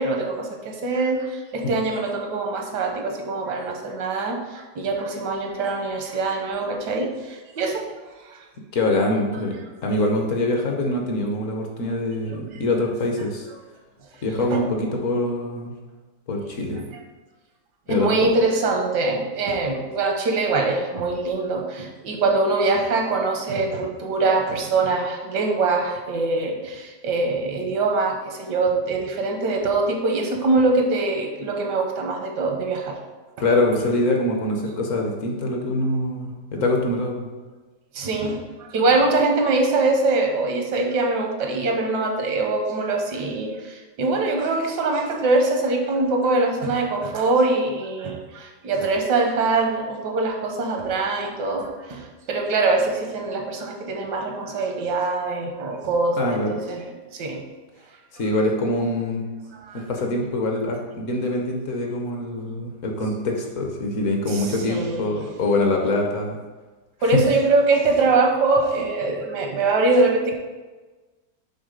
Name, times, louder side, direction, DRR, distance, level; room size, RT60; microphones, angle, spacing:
voice 1, 0.0-7.8 8.2-8.4 12.5-12.6 14.5-14.6 16.7-16.8 17.9-33.0 37.9-56.8 57.1-57.4 59.7-59.8 64.3-65.0 67.0-70.3, right 3 dB, 85° right, 2 dB, 1.6 m, -23 dB
voice 2, 8.7-9.5 9.8-13.5 14.2-15.7 16.3-16.8 17.9-18.1 33.4-37.3 56.2-56.5 58.1-59.3 59.7-66.4 67.1-67.2, left 2 dB, 55° left, 2 dB, 1.1 m, -24 dB
6.3 x 3.5 x 5.1 m, 1.3 s
omnidirectional pair, 1.8 m